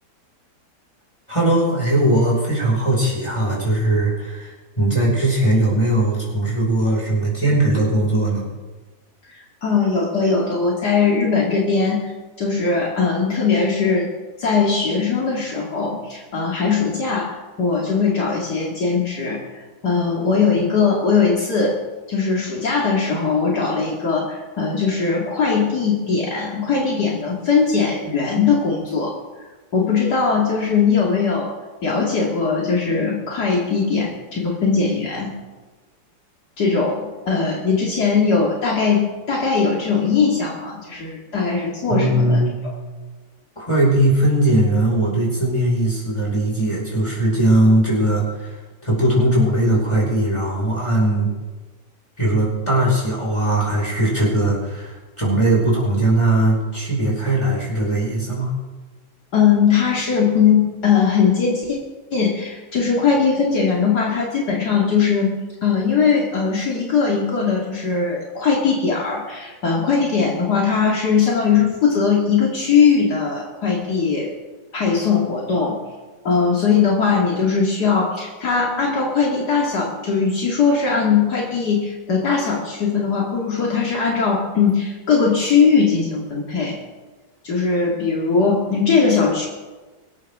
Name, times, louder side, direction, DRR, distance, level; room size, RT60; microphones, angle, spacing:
voice 1, 1.3-8.5 41.9-42.6 43.6-48.6 48.8-51.3 52.2-58.5, right 1 dB, 15° left, -5 dB, 5.2 m, -19 dB
voice 2, 9.3-12.1 12.4-14.1 14.4-19.4 19.8-21.8 22.1-29.2 29.7-31.5 31.8-35.3 36.6-42.4 59.3-61.8 62.1-65.3 65.6-74.3 74.7-75.8 76.2-86.8 87.4-89.5, left 5 dB, 65° left, -3 dB, 2.8 m, -20 dB
24.5 x 14.0 x 3.6 m, 1.3 s
omnidirectional pair, 1.8 m